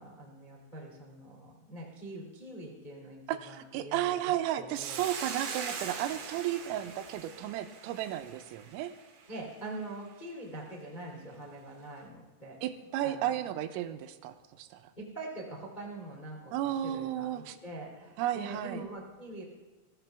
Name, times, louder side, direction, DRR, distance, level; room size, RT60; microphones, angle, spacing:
voice 1, 0.0-3.2 3.5-5.0 9.3-12.6 13.0-13.3 15.0-16.5 16.8-19.4, right 2 dB, 45° left, -2 dB, 0.5 m, -44 dB
voice 2, 3.3-8.9 12.6-14.8 16.5-17.6 18.2-18.8, right 12 dB, 85° right, 9 dB, 3.4 m, -33 dB
Hiss, 4.7-9.3, right 6 dB, 60° right, 2.4 m, -41 dB
20.5 x 14.5 x 3.4 m, 1.2 s
omnidirectional pair, 5.9 m